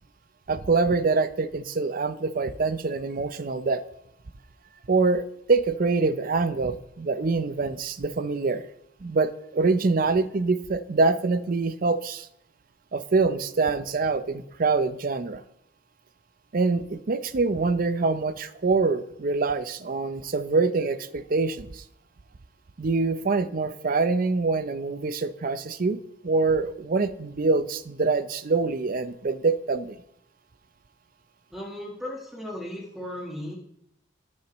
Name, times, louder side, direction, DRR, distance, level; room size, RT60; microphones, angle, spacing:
voice 1, 0.5-3.8 4.9-8.7 9.0-12.3 12.9-15.4 16.5-21.8 22.8-26.0 26.2-30.0, right 3 dB, 50° right, 13 dB, 0.5 m, -25 dB
voice 2, 31.5-33.6, left 1 dB, ahead, -2 dB, 1.4 m, -36 dB
15.5 x 6.4 x 3.0 m, 0.78 s
head